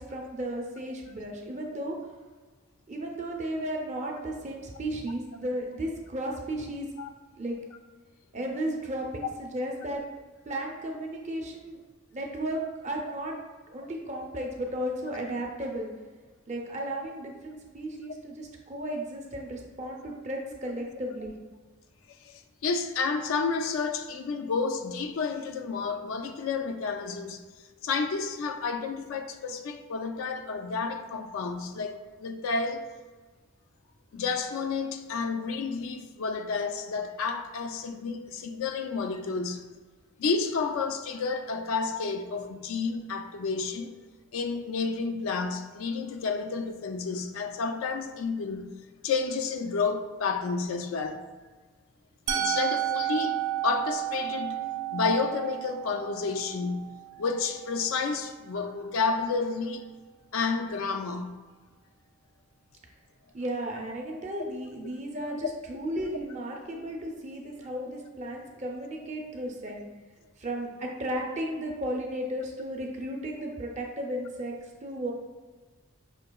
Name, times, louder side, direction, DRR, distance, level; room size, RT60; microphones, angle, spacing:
voice 1, 0.0-2.0 2.9-6.9 7.4-7.6 8.3-10.0 10.5-11.8 12.1-13.4 13.7-15.9 16.5-21.3 63.3-69.8 70.4-75.1, right 1 dB, 35° right, 0.5 m, -34 dB
voice 2, 22.2-27.4 27.8-32.9 34.1-39.7 40.2-43.9 44.3-48.7 49.0-51.3 52.3-54.6 54.9-59.8 60.3-61.4, left 4 dB, 70° left, 0.3 m, -30 dB
Musical instrument, 52.3-58.2, right 11 dB, 75° right, 0.6 m, -32 dB
5.8 x 2.7 x 2.2 m
head